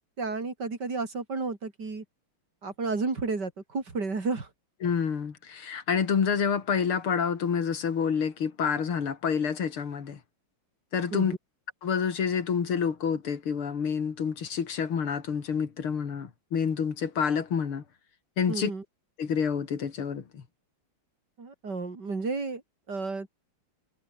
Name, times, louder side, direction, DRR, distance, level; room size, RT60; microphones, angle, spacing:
voice 1, 0.2-2.0 2.6-4.5 11.1-11.4 18.5-18.8 21.4-22.6 22.9-23.3, right 4 dB, 50° right, 4.0 m, -32 dB
voice 2, 4.8-10.2 10.9-11.4 11.8-17.8 18.4-18.7 19.2-20.4, left 6 dB, 85° left, 3.2 m, -28 dB
omnidirectional pair, 2.3 m